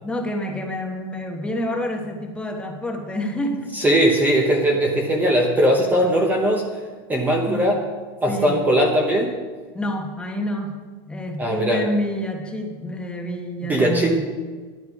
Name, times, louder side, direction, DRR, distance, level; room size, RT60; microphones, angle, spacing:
voice 1, 0.0-3.7 7.5-7.8 8.3-8.6 9.7-10.8 11.1-14.2, left 1 dB, 10° left, 2 dB, 1.2 m, -28 dB
voice 2, 3.7-6.7 7.1-7.8 8.2-9.3 11.4-11.8 13.7-14.1, equal, 10° right, 2 dB, 1.0 m, -19 dB
11.5 x 11.0 x 4.8 m, 1.5 s
supercardioid pair, 155°, 14 cm